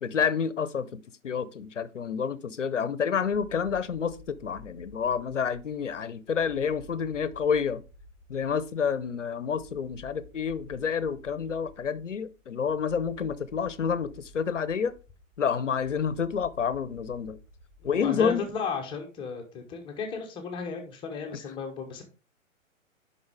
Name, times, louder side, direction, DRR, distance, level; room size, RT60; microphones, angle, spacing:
voice 1, 0.0-7.8 8.3-14.9 15.4-17.4 17.8-18.5, left 6 dB, 65° left, 0.8 m, -29 dB
sound 1, 3.1-18.7, left 1 dB, 75° right, 3.2 m, -52 dB
voice 2, 17.9-22.0, left 5 dB, 10° left, 1.0 m, -34 dB
9.5 x 5.6 x 3.5 m
figure-of-eight pair, 120°, 40 cm